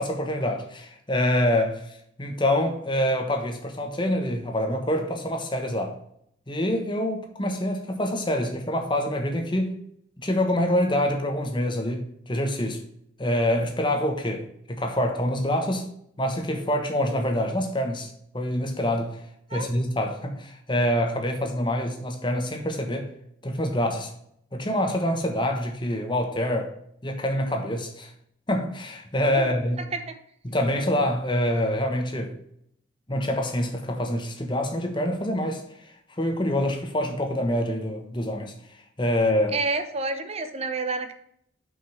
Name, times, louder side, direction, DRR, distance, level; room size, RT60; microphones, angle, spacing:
voice 1, 0.0-5.9 6.5-9.7 10.2-12.8 13.2-15.8 16.2-19.2 19.5-23.1 23.4-24.1 24.5-26.7 27.0-28.1 28.5-29.9 30.4-32.3 33.1-35.6 36.1-39.6, left 1 dB, 25° left, 1.3 m, -26 dB
voice 2, 39.5-41.1, right 3 dB, 35° right, 0.9 m, -29 dB
6.2 x 5.5 x 5.7 m
head